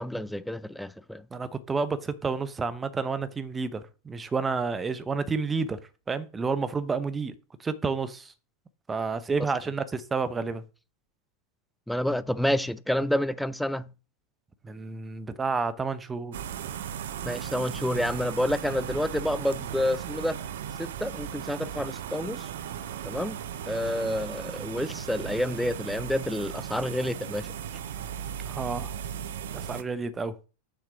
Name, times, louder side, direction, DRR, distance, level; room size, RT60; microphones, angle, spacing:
voice 1, 0.0-1.2 11.9-13.9 17.2-20.4 20.8-22.5 23.0-23.4 23.7-27.5, left 1 dB, ahead, 0.4 m, -29 dB
voice 2, 1.3-5.8 6.1-7.3 7.6-8.3 8.9-10.6 14.6-16.3 28.4-28.9 29.5-30.5, right 4 dB, 15° right, 0.8 m, -30 dB
sound 1, 16.3-29.8, right 9 dB, 55° right, 0.7 m, -37 dB
6.7 x 5.9 x 4.9 m
figure-of-eight pair, 90°, 0 cm